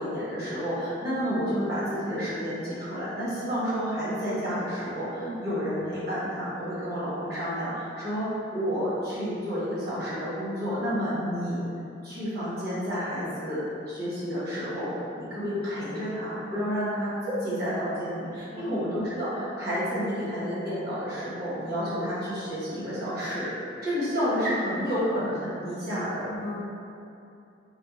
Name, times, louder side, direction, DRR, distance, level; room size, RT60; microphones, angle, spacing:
voice 1, 0.0-11.6 12.0-14.9 15.2-26.3, equal, 55° right, -11 dB, 1.1 m, -30 dB
voice 2, 26.3-26.6, equal, 65° left, -5 dB, 0.6 m, -37 dB
3.3 x 2.1 x 2.8 m, 2.8 s
head